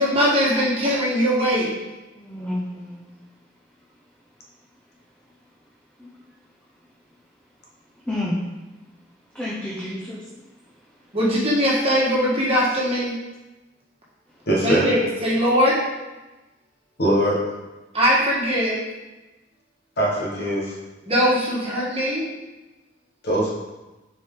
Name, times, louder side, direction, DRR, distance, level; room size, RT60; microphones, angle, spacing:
voice 1, 0.0-1.7 11.1-13.2 14.6-15.8 17.9-18.8 21.1-22.3, equal, 30° right, -5 dB, 1.7 m, -20 dB
voice 2, 2.1-3.1 6.0-6.1 8.1-8.4 9.3-10.2, left 1 dB, 5° left, -7 dB, 0.9 m, -29 dB
voice 3, 14.5-14.9 17.0-17.4 20.0-20.8 23.2-23.5, right 1 dB, 55° left, -3 dB, 1.5 m, -21 dB
6.9 x 4.5 x 3.8 m, 1.1 s
head